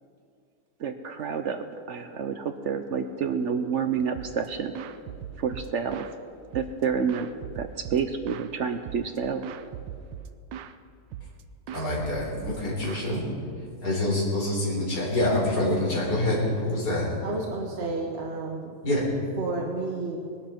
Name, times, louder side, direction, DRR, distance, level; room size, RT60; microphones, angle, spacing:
voice 1, 0.8-4.7 5.4-6.0 6.5-7.3 7.5-9.4, right 6 dB, 65° right, 8 dB, 0.7 m, -29 dB
sound 1, 4.1-4.5 4.7-6.2 6.5-8.5 8.9-9.2 9.4-10.8 11.1-11.4 11.7-13.8, right 9 dB, 85° right, 1.3 m, -39 dB
voice 2, 11.7-13.2 13.8-17.1 18.8-19.0, left 1 dB, 60° left, -5 dB, 4.6 m, -26 dB
voice 3, 17.2-18.8 19.4-20.3, right 3 dB, 45° right, 1 dB, 1.1 m, -31 dB
19.5 x 11.5 x 4.4 m, 2.3 s
omnidirectional pair, 1.9 m